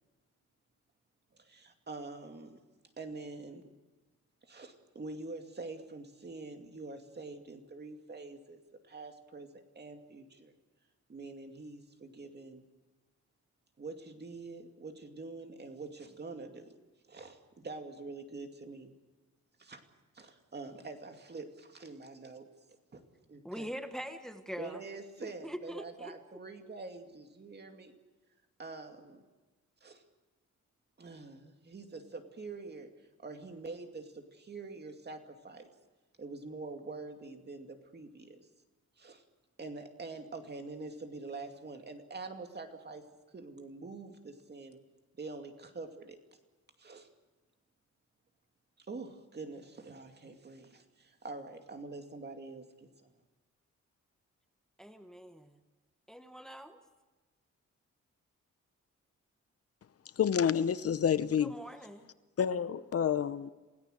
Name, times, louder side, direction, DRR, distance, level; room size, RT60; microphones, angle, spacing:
voice 1, 1.4-2.6 3.0-3.7 4.5-8.6 8.8-10.5 11.1-12.6 13.8-16.8 17.1-18.9 19.6-19.8 20.1-22.5 22.9-23.0 23.3-23.7 24.6-27.9 28.6-29.2 29.8-30.0 31.0-32.9 33.2-35.7 36.2-38.4 39.0-39.2 39.6-43.0 43.3-44.8 45.2-46.2 46.8-47.1 48.8-53.1, right 3 dB, 35° right, 5 dB, 2.4 m, -45 dB
voice 2, 23.4-24.8 25.2-26.1 54.8-55.6 56.1-56.8 61.4-62.1, equal, ahead, 8 dB, 1.2 m, -43 dB
voice 3, 60.2-61.5 62.4-63.5, left 8 dB, 55° left, 14 dB, 0.8 m, -28 dB
28.0 x 17.0 x 6.6 m, 1.2 s
wide cardioid pair, 120°, 29 cm